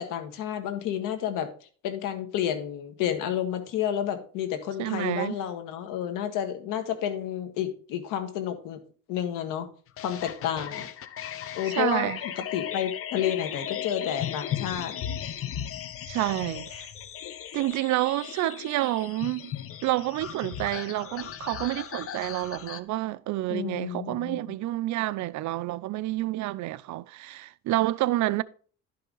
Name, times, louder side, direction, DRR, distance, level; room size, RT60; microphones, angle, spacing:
voice 1, 0.0-8.8 9.1-9.7 10.0-10.9 11.5-12.1 12.4-14.9 23.5-24.5, left 10 dB, 80° left, 1.7 m, -30 dB
voice 2, 4.8-5.3 11.7-12.2 16.1-16.9 17.5-19.5 19.8-28.4, right 16 dB, 65° right, 0.5 m, -29 dB
sound 1, 10.0-22.8, left 10 dB, 45° left, 0.8 m, -36 dB
11.5 x 5.6 x 3.9 m
cardioid pair, 130°, 31 cm